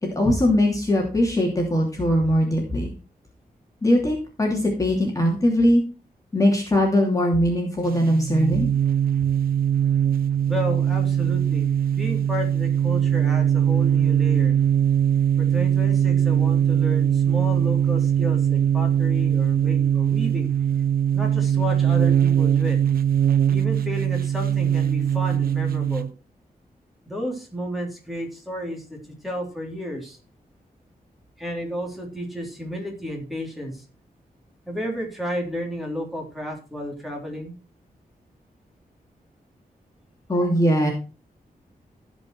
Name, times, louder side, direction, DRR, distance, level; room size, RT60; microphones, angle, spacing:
voice 1, 0.0-2.9 3.8-5.8 6.3-8.7 40.3-40.9, equal, 20° left, -1 dB, 2.8 m, -21 dB
sound 1, 7.8-26.1, right 9 dB, 70° right, 0.5 m, -21 dB
voice 2, 10.5-14.6 15.4-20.5 21.1-22.8 23.5-26.1 27.1-30.2 31.4-33.8 34.7-37.5, equal, ahead, -1 dB, 3.4 m, -32 dB
16.0 x 5.4 x 4.7 m, 0.33 s
wide cardioid pair, 170°, 16 cm